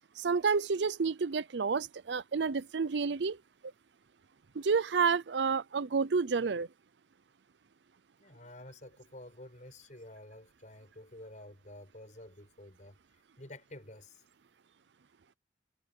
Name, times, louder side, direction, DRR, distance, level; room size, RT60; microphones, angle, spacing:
voice 1, 0.2-3.4 4.5-6.7, right 5 dB, 70° right, 0.6 m, -30 dB
voice 2, 8.2-13.0 13.4-14.2, left 1 dB, 45° left, 6.8 m, -50 dB
head